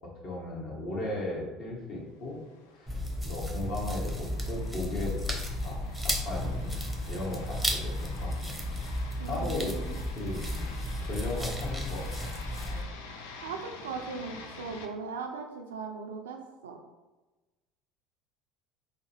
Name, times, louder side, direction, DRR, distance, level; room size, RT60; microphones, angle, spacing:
voice 1, 0.0-2.4 2.8-2.9 3.2-5.2 5.6-8.7 9.3-9.8 10.0-10.4 11.0-12.3, left 2 dB, 55° left, -3 dB, 1.2 m, -36 dB
sound 1, 2.3-14.9, left 4 dB, 70° left, 0.4 m, -48 dB
sound 2, 2.9-12.8, equal, ahead, 0.7 m, -33 dB
voice 2, 9.2-10.0 13.4-16.8, right 5 dB, 75° right, 3 dB, 0.4 m, -39 dB
4.8 x 2.1 x 3.2 m, 1.1 s
figure-of-eight pair, 65°, 0 cm